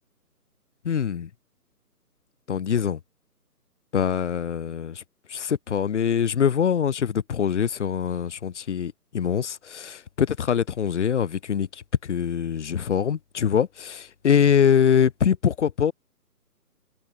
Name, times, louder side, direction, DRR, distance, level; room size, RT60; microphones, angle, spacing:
voice 1, 0.8-1.3 2.5-3.0 3.9-5.0 5.3-15.9, left 8 dB, 50° left, 0.6 m, -23 dB
figure-of-eight pair, 150°, 47 cm